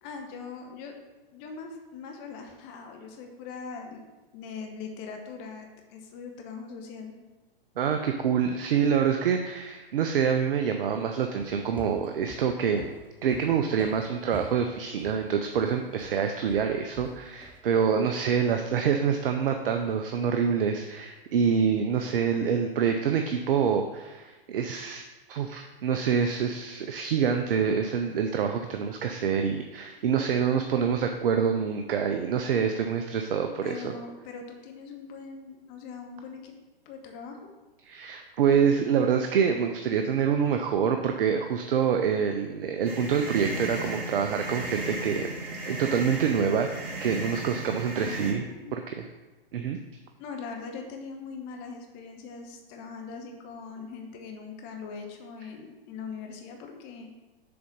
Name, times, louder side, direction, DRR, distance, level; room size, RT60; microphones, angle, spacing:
voice 1, 0.0-1.0 1.3-4.1 4.3-7.1 33.6-36.5 36.8-37.5 47.8-48.8 50.2-57.1, left 5 dB, 35° left, 3 dB, 1.0 m, -41 dB
voice 2, 7.8-12.9 13.2-25.0 25.3-33.9 37.8-45.3 45.7-48.4 48.7-49.1 49.5-49.8, right 7 dB, 65° right, 5 dB, 0.6 m, -26 dB
sound 1, 11.4-17.6, right 1 dB, 5° right, 0.5 m, -46 dB
sound 2, 42.8-48.3, right 2 dB, 30° right, 2.1 m, -35 dB
6.9 x 3.9 x 5.3 m, 1.2 s
hypercardioid pair, 115°, 30 cm